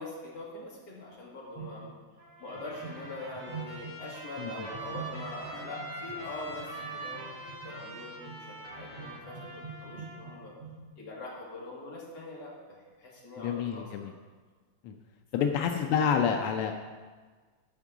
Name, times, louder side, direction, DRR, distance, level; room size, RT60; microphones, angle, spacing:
voice 1, 0.0-2.0 2.4-10.5 11.0-14.1 15.3-15.5, left 2 dB, 50° left, -4 dB, 2.6 m, -43 dB
sound 1, 1.6-2.2 2.5-4.2 4.7-10.8, right 5 dB, 85° right, 2.1 m, -46 dB
Trumpet, 2.2-10.4, right 2 dB, 55° right, 4.1 m, -44 dB
sound 2, 2.5-9.2, left 1 dB, 30° left, 3.6 m, -52 dB
voice 2, 13.4-14.1 14.8-14.9 15.3-16.7, left 7 dB, 85° left, 4 dB, 1.6 m, -28 dB
12.0 x 4.5 x 6.0 m, 1.4 s
omnidirectional pair, 2.4 m